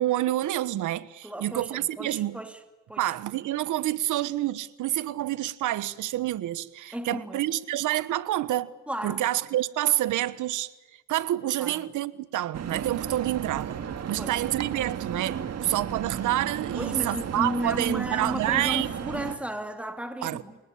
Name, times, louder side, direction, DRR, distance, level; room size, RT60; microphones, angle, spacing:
voice 1, 0.0-2.4 3.0-8.7 9.0-10.7 11.1-13.8 14.1-18.9 20.2-20.4, right 14 dB, 80° right, 1.3 m, -28 dB
voice 2, 1.2-2.6 2.9-3.1 6.9-7.4 8.9-9.2 11.6-11.8 14.2-14.4 16.7-20.6, equal, 5° right, 2.7 m, -34 dB
sound 1, 12.5-19.4, right 8 dB, 55° right, 2.1 m, -34 dB
30.0 x 19.0 x 8.7 m
cardioid pair, 90°, 30 cm